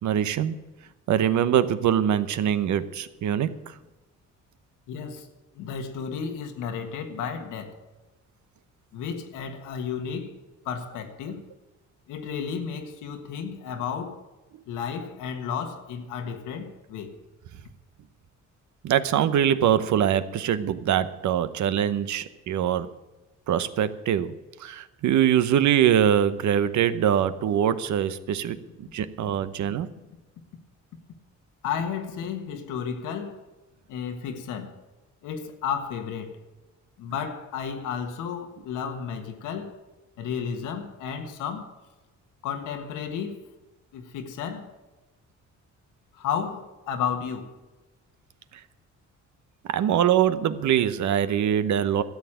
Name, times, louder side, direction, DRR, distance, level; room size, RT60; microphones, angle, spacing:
voice 1, 0.0-0.5 1.1-3.5 18.8-22.9 23.5-24.3 24.6-29.9 49.7-52.0, right 9 dB, 70° right, 0.9 m, -23 dB
voice 2, 4.9-5.3 5.5-7.8 8.9-10.4 10.6-11.5 12.1-14.2 14.7-17.1 31.6-33.4 33.9-34.7 35.2-36.4 37.0-39.8 40.2-41.7 42.4-43.4 43.9-44.7 46.1-47.5, left 7 dB, 90° left, 1.6 m, -32 dB
13.0 x 7.3 x 8.7 m
cardioid pair, 90°, 30 cm